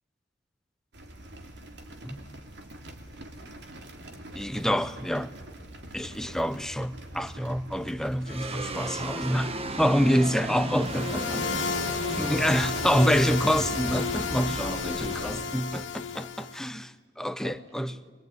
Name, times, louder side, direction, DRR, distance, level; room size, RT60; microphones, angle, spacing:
sound 1, 0.9-15.4, right 1 dB, 65° right, 2.7 m, -45 dB
voice 1, 2.0-2.4 4.3-5.3 5.9-11.5 12.2-14.8 15.2-17.9, equal, 5° left, 0.7 m, -27 dB
voice 2, 3.5-4.7 6.1-6.4 11.3-12.4 14.7-15.5 17.4-18.0, equal, 85° right, 3.7 m, -48 dB
sound 2, 8.3-16.8, right 2 dB, 30° right, 1.3 m, -36 dB
sound 3, 10.8-16.6, left 6 dB, 75° left, 0.8 m, -32 dB
24.0 x 23.0 x 9.4 m
head